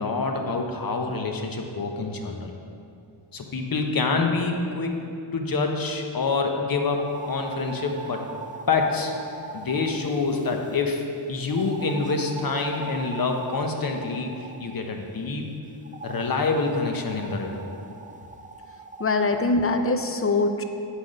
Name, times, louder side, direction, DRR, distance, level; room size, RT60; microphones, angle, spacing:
voice 1, 0.0-2.5 3.3-5.0 5.3-8.2 8.7-9.1 9.5-14.3 14.6-15.5 16.0-17.6, left 4 dB, 45° left, 3 dB, 1.0 m, -26 dB
sound 1, 6.9-10.8 11.5-14.8 15.8-19.1, right 4 dB, 20° right, 0.4 m, -40 dB
voice 2, 19.0-20.6, left 3 dB, 30° left, 6 dB, 0.6 m, -23 dB
8.2 x 6.0 x 5.3 m, 2.5 s
cardioid pair, 85°, 47 cm